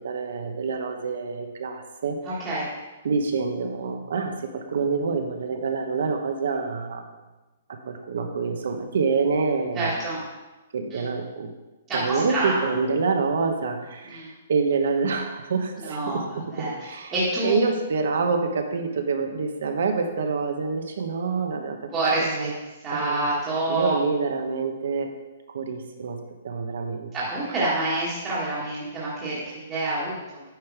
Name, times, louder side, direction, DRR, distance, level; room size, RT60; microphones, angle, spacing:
voice 1, 0.0-2.6 3.0-7.1 7.7-10.1 10.7-11.5 11.9-21.8 22.2-22.6 22.9-23.2 23.7-25.1 25.5-27.8, right 4 dB, 60° right, 5 dB, 1.1 m, -27 dB
voice 2, 2.2-2.7 9.7-10.2 10.9-11.0 11.9-12.8 14.0-14.3 15.8-17.6 21.9-22.5 22.8-23.9 27.1-30.4, right 2 dB, 15° right, -9 dB, 1.5 m, -27 dB
9.3 x 5.3 x 4.7 m, 1.1 s
hypercardioid pair, 175°, 0 cm